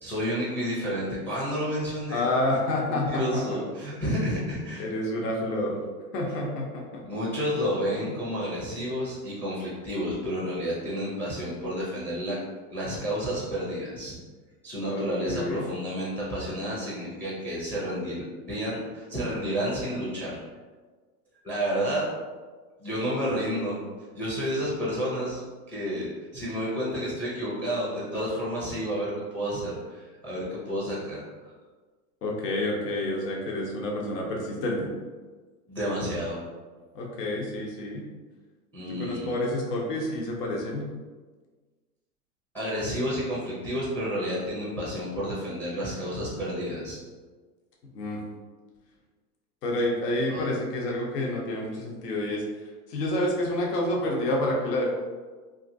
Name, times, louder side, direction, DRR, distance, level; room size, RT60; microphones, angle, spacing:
voice 1, 0.0-2.2 2.9-4.9 7.0-12.4 12.7-14.1 14.6-20.4 21.4-22.1 22.8-23.8 24.1-25.4 25.7-31.5 35.7-36.4 38.7-39.3 42.5-47.0 50.3-50.5, equal, 5° left, -6 dB, 0.4 m, -30 dB
voice 2, 2.1-3.6 4.0-4.4 4.8-5.8 6.1-7.0 8.0-8.2 14.8-15.7 32.2-34.9 36.9-38.0 39.0-40.9 47.9-48.2 49.6-52.4 52.9-54.9, left 1 dB, 85° left, -2 dB, 0.9 m, -29 dB
2.8 x 2.5 x 2.6 m, 1.4 s
hypercardioid pair, 125°, 46 cm